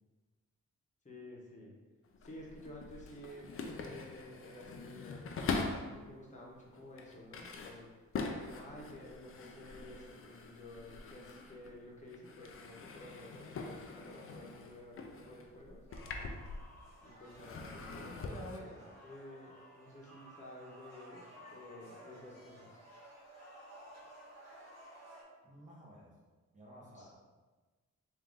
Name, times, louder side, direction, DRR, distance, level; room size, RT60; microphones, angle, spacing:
voice 1, 1.0-1.7 2.2-5.4 5.9-8.0 8.4-15.8 17.0-22.8 26.8-27.1, left 1 dB, 25° left, -4 dB, 1.1 m, -52 dB
sound 1, 2.0-6.0 6.6-11.8 12.1-16.9 17.3-18.6, left 4 dB, 50° left, 0.5 m, -43 dB
sound 2, 15.9-25.2, equal, 60° right, 1.3 m, -55 dB
voice 2, 25.4-26.2 26.5-27.1, equal, 25° right, -6 dB, 1.3 m, -55 dB
3.8 x 2.7 x 3.6 m, 1.3 s
cardioid pair, 110°, 29 cm